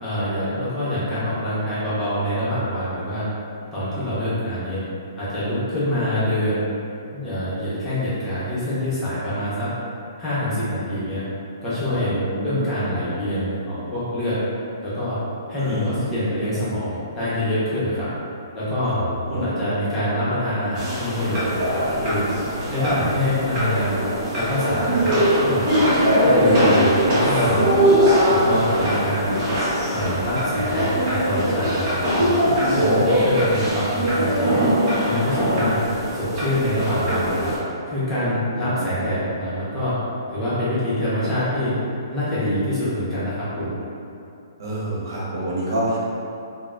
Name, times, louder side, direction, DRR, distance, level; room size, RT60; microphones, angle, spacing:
voice 1, 0.0-3.2 3.7-4.8 5.2-6.6 7.1-9.7 10.2-11.2 11.6-12.2 12.4-14.4 14.8-15.2 15.5-18.1 18.5-19.0 19.3-22.2 22.7-24.0 24.3-25.1 25.4-25.8 26.2-27.8 28.3-29.4 29.9-32.4 32.8-34.6 35.0-35.8 36.1-37.5 37.9-40.0 40.3-41.7 42.1-43.7, left 1 dB, 15° left, -12 dB, 0.9 m, -25 dB
voice 2, 11.8-12.7 15.6-16.0 18.8-19.5 22.8-22.9 26.6-26.9 38.5-39.3 44.6-46.0, right 1 dB, 65° right, -7 dB, 1.0 m, -28 dB
sound 1, 20.8-37.6, equal, 30° right, 0.9 m, -21 dB
3.7 x 2.1 x 2.4 m, 2.6 s
hypercardioid pair, 145°, 2 cm